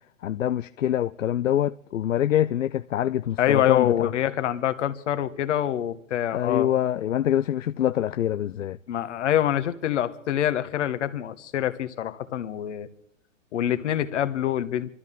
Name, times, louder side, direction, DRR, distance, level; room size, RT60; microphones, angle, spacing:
voice 1, 0.2-4.1 6.3-8.8, left 11 dB, 80° left, 0.5 m, -25 dB
voice 2, 3.4-6.7 8.9-12.9 13.5-14.9, left 11 dB, 65° left, 1.3 m, -25 dB
28.5 x 13.0 x 3.8 m
hypercardioid pair, 110°, 38 cm